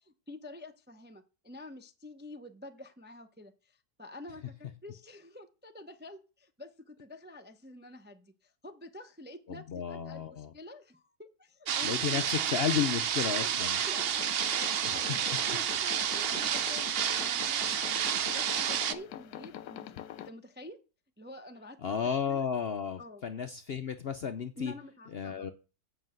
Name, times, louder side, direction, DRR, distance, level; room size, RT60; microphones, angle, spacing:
voice 1, 0.0-9.6 9.9-12.3 13.4-20.8 21.2-22.4 23.0-23.2 24.6-25.5, left 1 dB, 10° right, 7 dB, 0.4 m, -48 dB
voice 2, 9.5-10.5 11.8-13.8 21.8-24.7 25.1-25.5, left 7 dB, 55° left, 9 dB, 0.7 m, -33 dB
sound 1, 11.7-18.9, right 9 dB, 60° right, 0.6 m, -30 dB
sound 2, 13.8-20.3, left 11 dB, 80° left, 1.1 m, -44 dB
7.8 x 5.5 x 7.7 m, 0.33 s
omnidirectional pair, 1.6 m